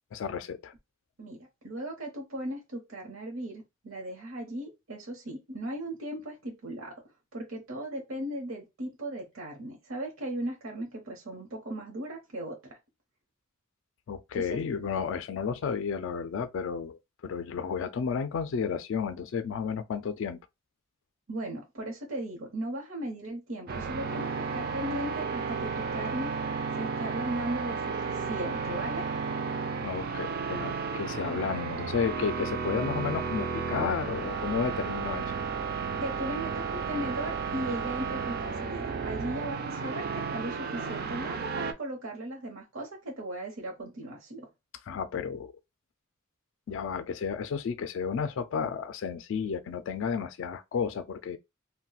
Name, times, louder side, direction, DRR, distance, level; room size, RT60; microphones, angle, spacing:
voice 1, 0.1-0.7 14.1-20.4 29.8-35.3 44.8-45.5 46.7-51.4, left 6 dB, 65° left, 0.3 m, -32 dB
voice 2, 1.6-6.9 7.3-12.6 14.3-14.6 21.3-26.3 26.8-29.1 36.0-44.5, right 1 dB, 75° right, 0.8 m, -37 dB
sound 1, 23.7-41.7, right 5 dB, 45° right, 0.4 m, -33 dB
2.3 x 2.1 x 3.9 m
head